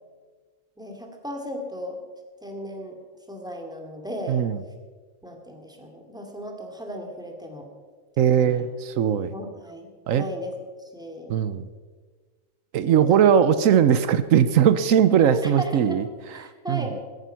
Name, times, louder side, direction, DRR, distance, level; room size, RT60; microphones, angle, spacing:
voice 1, 0.8-2.0 2.4-3.0 3.3-4.4 5.2-7.7 8.2-8.6 9.3-10.5 10.8-11.4 13.1-13.2 15.3-16.0 16.3-17.0, equal, 5° right, 2 dB, 2.4 m, -36 dB
voice 2, 4.3-4.6 8.2-9.3 10.1-10.3 11.3-11.7 12.7-16.0 16.4-16.9, right 8 dB, 85° right, 13 dB, 1.2 m, -20 dB
16.0 x 14.0 x 5.7 m, 1.5 s
omnidirectional pair, 1.4 m